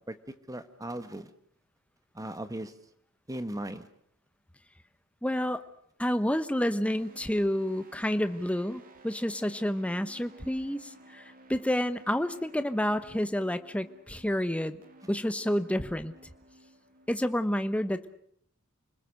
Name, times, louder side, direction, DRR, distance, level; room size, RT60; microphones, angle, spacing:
voice 1, 0.1-1.3 2.1-2.7 3.3-3.9, right 1 dB, 15° right, 10 dB, 1.4 m, -38 dB
voice 2, 5.2-5.6 6.0-14.8 15.1-16.1 17.1-18.2, equal, 5° left, 10 dB, 1.0 m, -29 dB
sound 1, 6.8-17.4, right 1 dB, 40° right, 2.6 m, -56 dB
29.5 x 20.5 x 6.5 m, 0.66 s
head